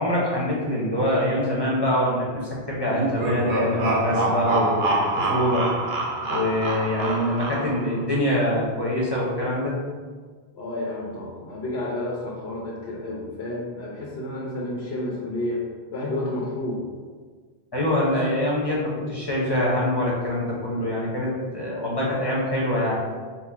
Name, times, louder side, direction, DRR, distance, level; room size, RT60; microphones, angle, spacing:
voice 1, 0.0-5.7 6.3-9.7 17.7-23.0, left 1 dB, 25° left, -5 dB, 0.8 m, -24 dB
sound 1, 2.9-8.0, right 2 dB, 75° right, 0.9 m, -26 dB
voice 2, 10.6-15.6 15.9-16.8, left 1 dB, 80° left, -4 dB, 1.0 m, -30 dB
4.3 x 2.1 x 4.6 m, 1.5 s
omnidirectional pair, 1.1 m